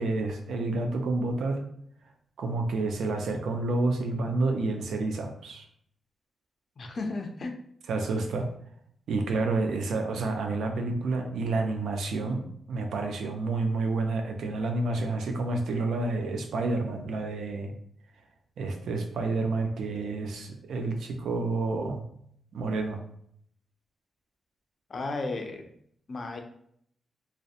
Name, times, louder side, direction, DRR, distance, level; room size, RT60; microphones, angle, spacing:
voice 1, 0.0-1.6 2.4-5.6 7.9-8.5 9.1-12.4 12.7-17.7 18.6-22.0 22.5-23.0, right 3 dB, 90° right, 4 dB, 0.4 m, -29 dB
voice 2, 6.8-7.5 24.9-25.7 26.1-26.4, left 3 dB, 45° left, 4 dB, 0.4 m, -34 dB
2.6 x 2.0 x 2.4 m, 0.67 s
wide cardioid pair, 130°, 0 cm